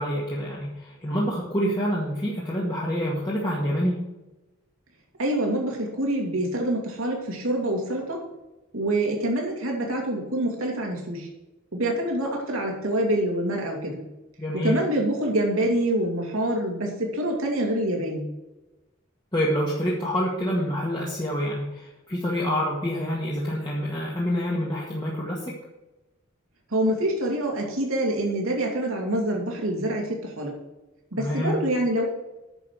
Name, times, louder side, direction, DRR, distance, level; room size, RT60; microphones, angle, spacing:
voice 1, 0.0-4.0 14.4-14.8 19.3-25.4 31.2-31.6, equal, 20° left, -5 dB, 1.8 m, -27 dB
voice 2, 5.2-8.2 8.7-11.3 11.7-14.0 14.6-18.3 26.7-30.5 31.1-32.0, right 1 dB, 80° right, 0 dB, 2.8 m, -26 dB
9.7 x 6.7 x 6.6 m, 1.0 s
head